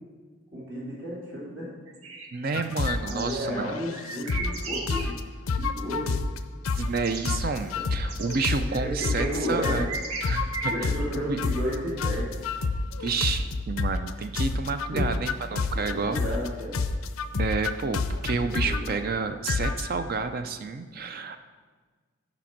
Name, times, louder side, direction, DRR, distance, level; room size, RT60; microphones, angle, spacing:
voice 1, 0.5-1.7 3.0-5.1 5.5-6.2 7.6-7.7 8.5-9.8 10.7-12.4 14.9-15.1 15.5-16.8 18.4-18.9, equal, 60° right, -7 dB, 2.6 m, -33 dB
sound 1, 1.9-3.4 3.9-5.1 6.7-6.8 7.0-11.0, right 3 dB, 90° right, 1.1 m, -36 dB
voice 2, 2.3-3.7 6.7-9.9 10.3-10.9 11.3-11.4 13.0-16.2 17.3-21.4, right 4 dB, 45° right, 9 dB, 0.4 m, -30 dB
sound 2, 2.5-3.1 3.6-4.6 4.9-5.2 5.5-6.4 6.6-7.0 7.2-9.4 9.6-14.1 14.3-16.5 16.7-18.9 19.5-20.0, left 4 dB, 80° left, 0.5 m, -29 dB
8.8 x 5.1 x 5.9 m, 1.4 s
head